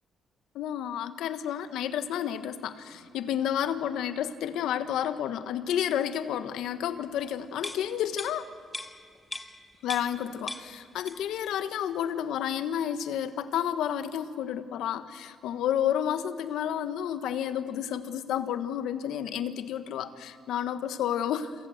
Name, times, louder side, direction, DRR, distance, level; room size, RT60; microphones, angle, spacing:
voice 1, 0.5-8.5 9.8-21.5, left 10 dB, 85° left, 11 dB, 1.4 m, -31 dB
sound 1, 7.6-10.2 10.5-11.4 11.8-11.9, left 2 dB, 15° left, 1.8 m, -40 dB
28.0 x 26.5 x 7.9 m, 2.2 s
cardioid pair, 90°, 0 cm